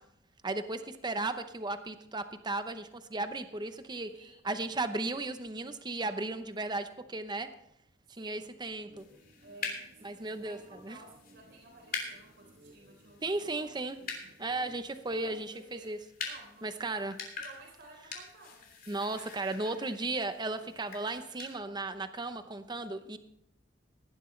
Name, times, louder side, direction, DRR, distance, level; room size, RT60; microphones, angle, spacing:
voice 1, 0.4-4.1 4.4-7.5 8.2-9.0 10.0-11.0 13.2-14.0 14.4-16.0 16.6-17.2 18.9-23.2, right 2 dB, 25° right, 9 dB, 0.8 m, -35 dB
voice 2, 8.1-8.5 9.4-13.7 14.0-14.3 15.2-15.9 16.2-18.7, right 2 dB, 60° right, -1 dB, 4.0 m, -55 dB
sound 1, 8.8-15.4, right 1 dB, 85° right, 3.7 m, -60 dB
sound 2, 9.0-21.5, left 4 dB, 50° left, 3.2 m, -45 dB
17.5 x 11.5 x 3.3 m, 0.77 s
head